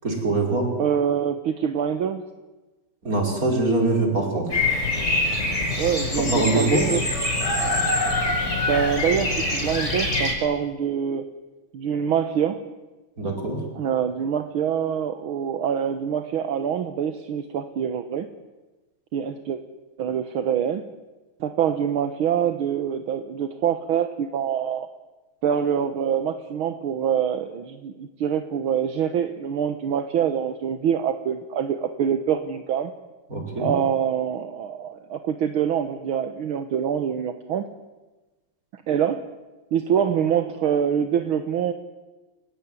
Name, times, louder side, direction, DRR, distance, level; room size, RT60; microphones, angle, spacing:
voice 1, 0.0-0.7 3.0-4.5 6.3-6.9 13.2-13.6 33.3-33.7, right 2 dB, 40° right, 1 dB, 5.7 m, -23 dB
voice 2, 0.8-2.2 5.8-7.0 8.7-11.3 11.7-12.6 13.8-18.3 19.1-19.6 20.0-20.9 21.4-24.9 25.4-32.9 33.6-37.7 38.9-39.2 39.7-41.7, right 8 dB, 75° right, 8 dB, 2.0 m, -25 dB
Bird vocalization bird call bird song, 4.5-10.3, left 2 dB, 30° left, 6.3 m, -24 dB
29.5 x 17.0 x 9.9 m, 1.2 s
omnidirectional pair, 2.4 m